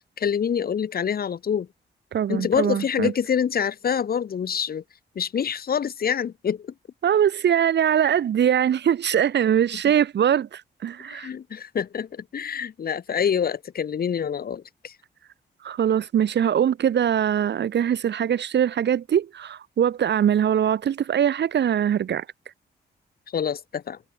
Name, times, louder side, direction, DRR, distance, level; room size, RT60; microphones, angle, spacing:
voice 1, 0.2-1.7 2.3-4.8 5.2-6.7 11.1-14.9 23.3-24.0, left 7 dB, 55° left, 3.5 m, -26 dB
voice 2, 2.1-3.1 7.0-11.3 15.6-22.2, right 9 dB, 70° right, 2.4 m, -22 dB
wide cardioid pair, 170°, 19 cm